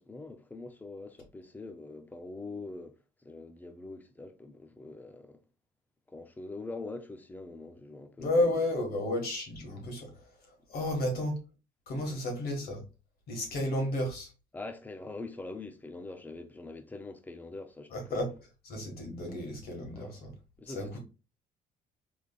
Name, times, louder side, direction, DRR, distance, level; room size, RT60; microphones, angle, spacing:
voice 1, 0.0-5.4 6.1-8.4 12.0-12.2 13.5-13.6 14.5-18.3 19.9-20.2 20.6-21.0, left 3 dB, 10° left, 0.5 m, -44 dB
voice 2, 8.2-10.1 10.7-11.4 11.9-12.8 13.3-14.3 17.9-18.3 18.6-20.3 20.7-21.0, left 1 dB, 65° left, 1.6 m, -32 dB
3.5 x 3.2 x 2.3 m
cardioid pair, 110°, 17 cm